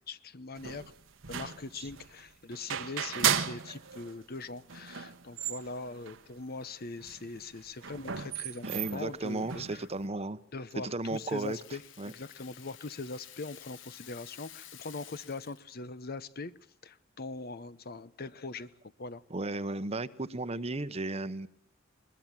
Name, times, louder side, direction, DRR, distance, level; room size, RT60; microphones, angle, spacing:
voice 1, 0.1-0.8 1.3-9.8 10.5-16.5 16.8-18.7 19.0-19.2, left 3 dB, 50° left, 0.9 m, -41 dB
sound 1, 0.6-4.2 4.4-4.5 4.7-6.2 6.6-6.7 7.0-10.1, right 8 dB, 75° right, 1.2 m, -35 dB
voice 2, 8.6-10.4 10.8-11.6 12.0-12.1 19.3-21.5, right 2 dB, 30° right, 1.0 m, -34 dB
Rattle (instrument), 10.7-15.8, left 11 dB, 70° left, 1.1 m, -52 dB
21.5 x 21.0 x 7.5 m
head